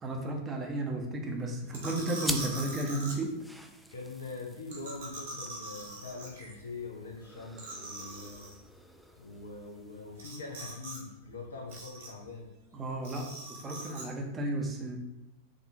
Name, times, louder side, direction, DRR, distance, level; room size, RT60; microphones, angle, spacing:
voice 1, 0.0-3.3 12.7-15.0, right 1 dB, 20° right, 1 dB, 0.7 m, -33 dB
sound 1, 1.7-3.1 4.7-6.5 6.9-7.0 7.2-7.3 7.6-8.5 10.2-11.0 11.2-12.3 13.0-14.0, right 2 dB, 65° right, 1.2 m, -42 dB
sound 2, 2.2-11.2, right 1 dB, ahead, 0.3 m, -45 dB
voice 2, 3.9-8.5 9.2-12.5, left 3 dB, 70° left, 0 dB, 0.6 m, -43 dB
5.0 x 2.6 x 2.8 m, 0.93 s
figure-of-eight pair, 90°, 0 cm